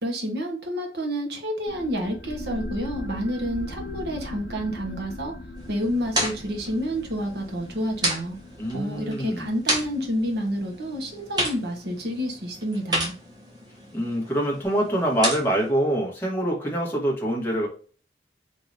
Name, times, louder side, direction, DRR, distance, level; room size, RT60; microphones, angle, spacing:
voice 1, 0.0-5.3 5.7-8.4 8.7-13.1, equal, 70° right, 1 dB, 1.3 m, -29 dB
sound 1, 1.7-12.8, left 1 dB, 65° left, 1.2 m, -40 dB
sound 2, 5.6-15.7, right 1 dB, 25° right, 1.0 m, -32 dB
voice 2, 8.6-9.5 13.9-17.7, right 1 dB, 15° left, -2 dB, 1.4 m, -25 dB
3.8 x 2.9 x 3.9 m, 0.40 s
head